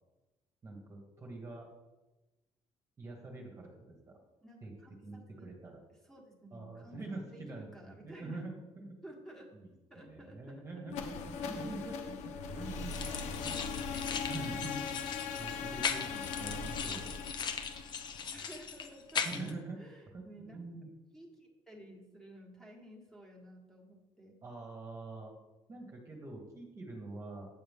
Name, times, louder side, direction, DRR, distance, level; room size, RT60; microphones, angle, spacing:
voice 1, 0.6-1.7 3.0-4.2 4.6-4.7 5.0-5.8 6.5-9.0 9.5-9.7 9.9-13.1 13.4-13.7 14.3-14.9 15.4-17.2 19.2-19.8 20.1-20.9 24.4-25.3 25.7-27.5, right 3 dB, 25° right, 0 dB, 1.3 m, -45 dB
voice 2, 4.4-5.5 6.0-8.5 9.0-9.6 9.9-10.8 11.4-11.5 12.5-12.7 13.1-14.8 18.3-20.6 21.1-24.4, equal, 5° left, -1 dB, 1.5 m, -54 dB
sound 1, 10.9-18.8, left 6 dB, 85° left, 0.9 m, -40 dB
sound 2, 12.9-19.5, left 6 dB, 40° left, 0.8 m, -39 dB
8.6 x 7.9 x 3.6 m, 1.1 s
cardioid pair, 160°, 12 cm